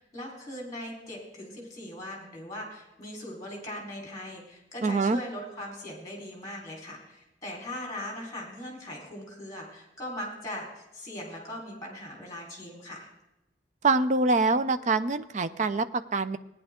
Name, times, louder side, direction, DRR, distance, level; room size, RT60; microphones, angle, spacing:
voice 1, 0.0-13.1, left 1 dB, 20° left, -1 dB, 3.9 m, -40 dB
voice 2, 4.8-5.2 13.8-16.4, right 3 dB, 40° right, 11 dB, 0.5 m, -25 dB
17.0 x 9.9 x 3.6 m, 0.94 s
head